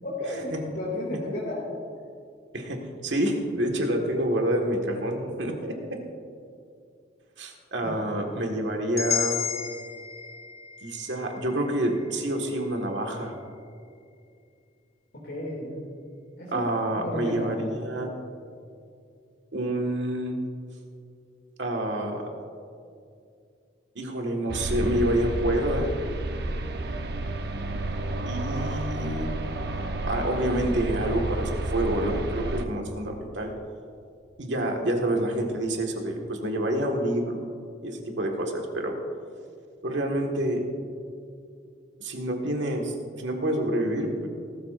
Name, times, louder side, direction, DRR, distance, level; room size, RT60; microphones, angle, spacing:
voice 1, 0.0-1.6 7.8-7.9 15.1-15.8 16.4-16.6 17.0-17.8, left 1 dB, 65° left, -6 dB, 2.6 m, -33 dB
voice 2, 2.5-6.0 7.4-9.4 10.8-13.3 16.5-18.1 19.5-20.4 21.6-22.2 23.9-25.9 28.2-29.3 30.0-33.5 34.4-37.4 37.8-38.9 39.8-40.6 42.0-44.3, right 1 dB, 90° right, 2 dB, 1.8 m, -28 dB
sound 1, 9.0-13.0, left 8 dB, 35° left, 1.2 m, -33 dB
sound 2, 24.5-32.7, right 2 dB, 65° right, 0.8 m, -31 dB
19.0 x 13.0 x 2.6 m, 2.4 s
head